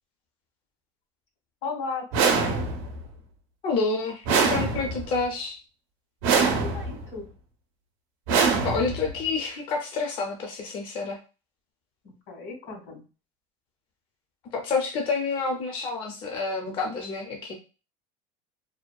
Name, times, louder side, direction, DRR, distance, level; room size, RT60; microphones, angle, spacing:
voice 1, 1.6-2.6 6.6-7.3 12.0-13.0, left 4 dB, 80° left, 2 dB, 1.4 m, -36 dB
sound 1, 2.1-3.0 4.3-5.2 6.2-7.0 8.3-9.2, right 5 dB, 80° right, 0.6 m, -24 dB
voice 2, 3.6-5.6 8.6-11.2 14.5-17.5, left 4 dB, 35° left, 2 dB, 0.4 m, -28 dB
2.6 x 2.1 x 2.2 m, 0.33 s
cardioid pair, 140°, 16 cm